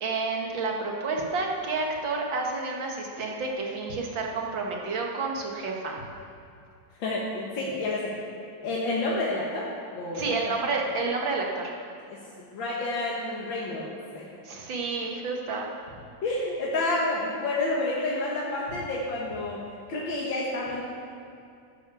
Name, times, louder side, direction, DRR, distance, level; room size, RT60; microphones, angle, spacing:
voice 1, 0.0-6.0 10.1-11.7 14.4-15.7, right 3 dB, 80° right, 0 dB, 2.4 m, -30 dB
voice 2, 7.0-8.1 8.6-10.5 12.1-14.3 16.2-19.6 19.9-20.8, left 2 dB, 80° left, -5 dB, 2.3 m, -29 dB
12.5 x 9.7 x 7.0 m, 2.5 s
omnidirectional pair, 2.1 m